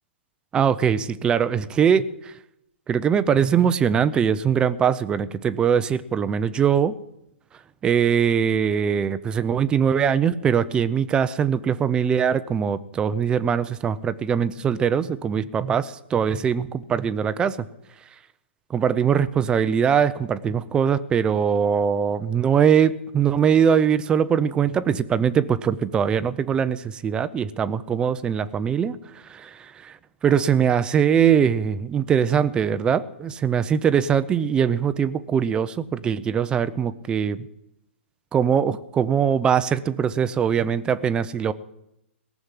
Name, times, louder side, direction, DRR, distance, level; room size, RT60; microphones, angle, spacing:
voice 1, 0.5-2.3 2.9-6.9 7.8-17.6 18.7-37.5 38.3-41.5, right 7 dB, 15° right, 14 dB, 0.5 m, -22 dB
18.0 x 7.2 x 9.8 m, 0.84 s
hypercardioid pair, 150°, 7 cm